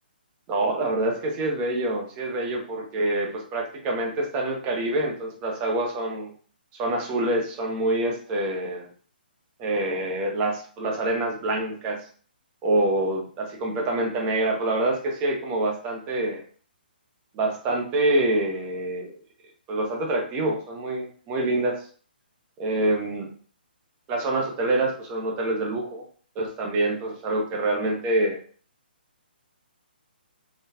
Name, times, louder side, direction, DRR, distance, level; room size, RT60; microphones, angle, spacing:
voice 1, 0.5-6.3 6.8-8.9 9.6-12.0 12.6-16.4 17.3-19.1 19.7-21.8 22.6-23.3 24.1-26.0 26.4-28.4, right 2 dB, 20° right, 0 dB, 0.8 m, -26 dB
3.8 x 2.3 x 2.8 m, 0.44 s
hypercardioid pair, 150°, 6 cm